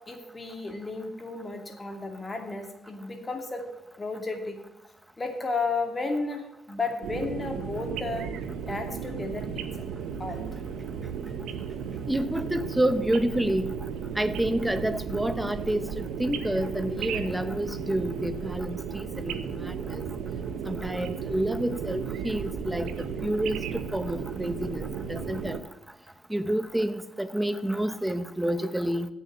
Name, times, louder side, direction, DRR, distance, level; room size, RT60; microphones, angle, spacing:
voice 1, 0.1-3.6 4.0-4.6 5.2-8.3 8.7-9.6 10.2-10.4, left 3 dB, 25° left, 4 dB, 2.3 m, -33 dB
sound 1, 7.0-25.6, right 7 dB, 90° right, 0.9 m, -34 dB
voice 2, 12.1-13.7 14.2-20.0 20.6-23.6 23.9-25.6 26.3-29.1, right 1 dB, 5° right, 12 dB, 0.9 m, -29 dB
8.3 x 7.0 x 8.0 m, 1.0 s
cardioid pair, 90°, 0 cm